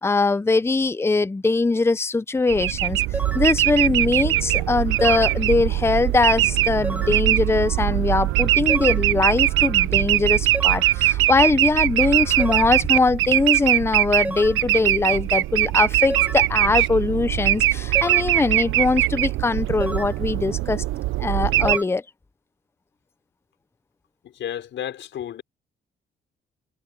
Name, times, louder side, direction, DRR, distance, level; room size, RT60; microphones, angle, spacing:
voice 1, 0.0-3.0 3.3-20.8 21.2-22.0, left 3 dB, 10° left, 0.6 m, -21 dB
sound 1, 2.5-21.8, right 16 dB, 85° right, 0.7 m, -21 dB
sound 2, 3.1-3.5 5.0-5.4 6.8-7.2 8.7-9.1 10.5-10.9 12.4-12.8 14.2-14.6 16.1-16.5 17.9-18.3 19.8-20.2 21.7-21.8, right 1 dB, 5° right, 1.9 m, -31 dB
voice 2, 24.2-25.4, left 10 dB, 70° left, 5.9 m, -32 dB
cardioid pair, 90°, 20 cm